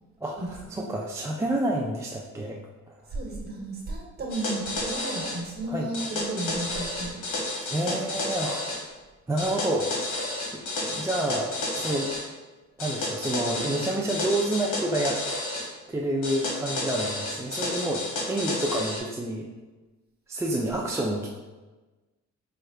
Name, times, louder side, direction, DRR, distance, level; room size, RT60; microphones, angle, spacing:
voice 1, 0.2-2.6 2.9-3.0 5.7-5.9 7.7-8.6 9.3-10.0 10.5-12.1 12.8-15.2 15.9-19.5 20.3-21.3, right 1 dB, 10° right, -2 dB, 0.3 m, -29 dB
voice 2, 3.1-7.2, right 2 dB, 30° right, -2 dB, 1.2 m, -33 dB
sound 1, 4.3-5.4 5.9-8.8 9.4-12.2 12.8-15.7 16.2-19.0, left 2 dB, 80° left, 1.1 m, -31 dB
4.4 x 2.3 x 3.3 m, 1.2 s
cardioid pair, 90°, 30 cm